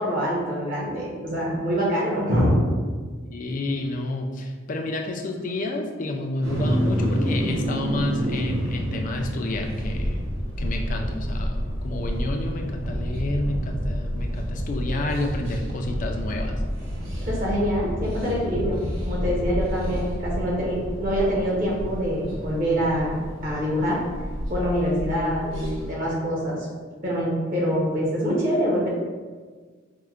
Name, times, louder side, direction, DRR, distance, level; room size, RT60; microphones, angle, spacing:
voice 1, 0.0-2.6 17.2-23.2 23.4-24.0 24.5-26.7 27.0-28.9, equal, 45° right, -4 dB, 0.8 m, -25 dB
voice 2, 3.3-10.3 10.6-16.6, left 1 dB, 40° left, 2 dB, 0.4 m, -29 dB
sound 1, 6.4-25.9, equal, 85° right, 1.0 m, -31 dB
sound 2, 9.7-20.0, equal, ahead, 0.6 m, -30 dB
4.5 x 2.1 x 2.4 m, 1.5 s
head